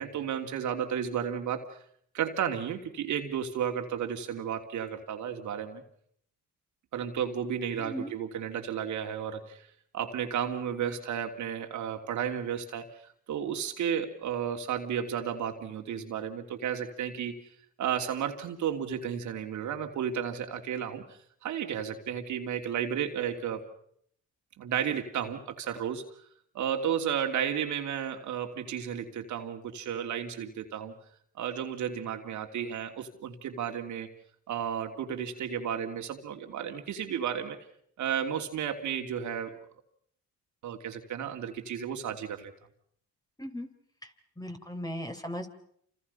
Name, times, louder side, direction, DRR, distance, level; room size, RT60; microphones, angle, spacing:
voice 1, 0.0-1.8 2.1-5.8 6.9-9.7 9.9-17.4 17.8-23.7 24.6-26.0 26.5-30.9 31.4-34.1 34.5-37.6 38.0-39.6 40.6-42.5, right 8 dB, 75° right, 4 dB, 3.0 m, -33 dB
voice 2, 7.8-8.1 43.4-43.7 44.4-45.5, equal, 10° left, 6 dB, 3.8 m, -37 dB
28.5 x 28.0 x 5.6 m, 0.66 s
cardioid pair, 90°, 30 cm